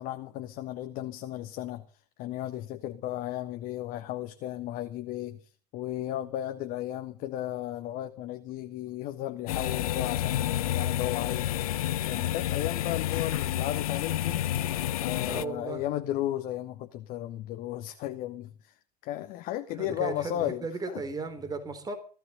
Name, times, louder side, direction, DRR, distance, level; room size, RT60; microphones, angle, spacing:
voice 1, 0.0-1.8 2.2-14.4 15.0-18.8 19.0-21.0, left 13 dB, 40° left, 1.4 m, -35 dB
sound 1, 9.5-15.4, left 12 dB, 60° left, 0.8 m, -29 dB
voice 2, 15.3-15.8 19.8-21.9, right 3 dB, 20° right, 3.6 m, -35 dB
17.5 x 13.5 x 5.4 m
figure-of-eight pair, 80°, 21 cm